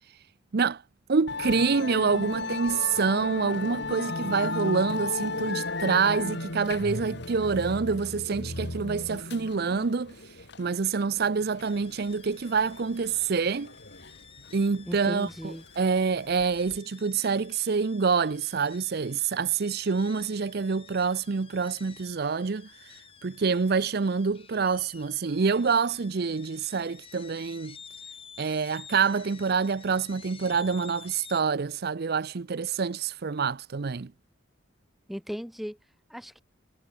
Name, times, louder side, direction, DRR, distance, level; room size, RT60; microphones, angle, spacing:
voice 1, 1.1-10.1 10.6-13.7 14.5-22.7 23.2-27.8 28.4-34.1, right 5 dB, 55° right, 0.5 m, -27 dB
Musical instrument, 1.3-16.8, left 3 dB, 60° left, 3.5 m, -35 dB
sound 1, 11.6-31.4, left 7 dB, 30° left, 4.2 m, -51 dB
voice 2, 14.9-15.6 35.1-35.8 36.1-36.4, equal, ahead, 2.2 m, -36 dB
head